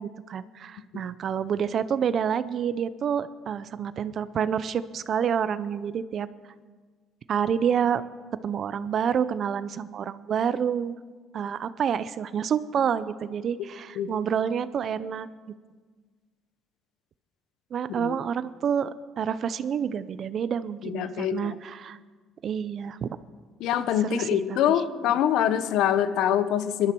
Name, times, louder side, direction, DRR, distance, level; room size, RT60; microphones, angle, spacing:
voice 1, 0.0-6.3 7.3-8.0 8.4-11.0 11.3-15.3 17.7-22.0 22.4-23.2 24.0-24.8, right 8 dB, 55° right, 15 dB, 0.6 m, -28 dB
voice 2, 20.8-21.6 23.6-26.9, left 10 dB, 75° left, 12 dB, 0.9 m, -24 dB
20.5 x 13.0 x 4.6 m, 1.5 s
cardioid pair, 95°, 0 cm